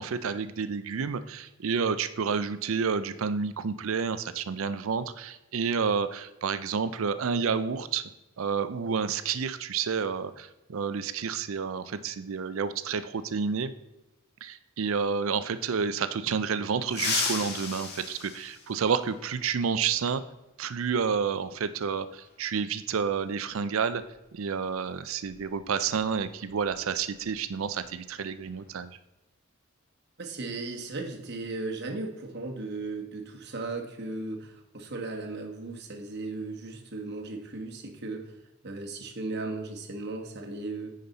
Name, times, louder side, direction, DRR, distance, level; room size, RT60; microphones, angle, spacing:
voice 1, 0.0-8.0 8.4-13.7 14.4-20.2 20.6-24.0 24.3-28.9, right 6 dB, 70° right, 13 dB, 0.5 m, -30 dB
sound 1, 16.9-19.3 20.9-21.0 22.2-22.3 24.0-24.1 24.5-24.7 25.2-27.4 27.6-27.9 28.3-28.7, left 4 dB, 50° left, 1.4 m, -35 dB
voice 2, 30.2-40.9, right 3 dB, 50° right, 2 dB, 1.2 m, -36 dB
9.5 x 5.2 x 4.0 m, 0.97 s
head